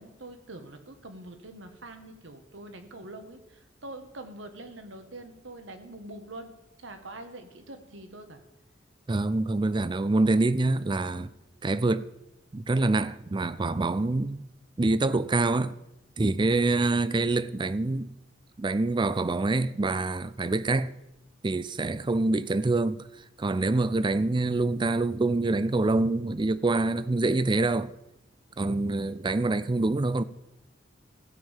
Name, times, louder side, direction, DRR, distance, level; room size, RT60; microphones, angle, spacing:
voice 1, 0.0-6.5 6.8-8.4, right 2 dB, 75° right, 1.5 m, -44 dB
voice 2, 9.1-11.3 11.6-12.0 12.5-14.4 14.8-15.8 16.2-18.1 18.6-20.9 21.4-23.0 23.4-27.9 28.6-30.2, right 2 dB, 25° right, 0.4 m, -26 dB
15.5 x 5.6 x 7.2 m
head